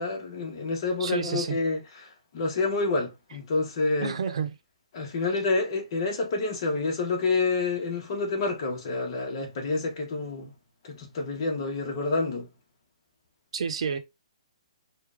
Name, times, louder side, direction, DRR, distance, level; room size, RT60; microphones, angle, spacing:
voice 1, 0.0-1.8 2.3-4.2 4.9-10.5 10.8-12.5, left 3 dB, 45° left, 1.7 m, -28 dB
voice 2, 1.0-1.5 4.0-4.5 13.5-14.0, right 6 dB, 65° right, 0.9 m, -29 dB
4.8 x 2.7 x 3.6 m
hypercardioid pair, 150°, 3 cm